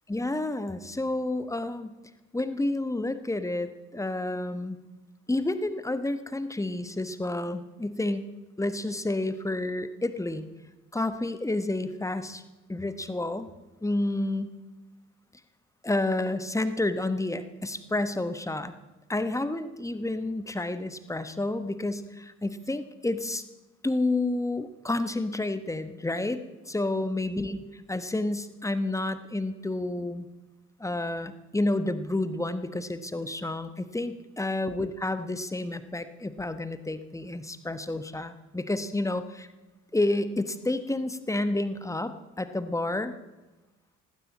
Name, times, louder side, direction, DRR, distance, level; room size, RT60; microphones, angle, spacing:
voice 1, 0.1-1.9 2.3-4.8 5.3-8.2 8.6-10.5 10.9-12.4 12.7-13.5 13.8-14.5 15.8-18.7 19.1-23.4 23.8-27.6 27.9-30.3 30.8-39.5 39.9-43.1, left 2 dB, 10° left, 11 dB, 1.2 m, -30 dB
18.5 x 17.0 x 4.3 m, 1.1 s
figure-of-eight pair, 45°, 37 cm